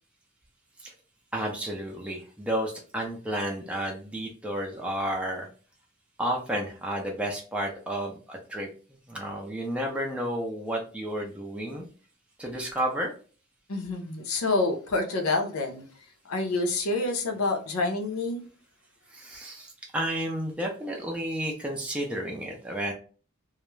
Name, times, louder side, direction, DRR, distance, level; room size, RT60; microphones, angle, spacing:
voice 1, 1.3-5.5 6.2-8.7 9.1-11.9 12.4-13.1 19.1-22.9, right 1 dB, 5° right, -1 dB, 0.4 m, -31 dB
voice 2, 13.7-15.9 16.2-18.4, left 2 dB, 85° left, 4 dB, 0.6 m, -27 dB
2.3 x 2.0 x 3.0 m, 0.38 s
head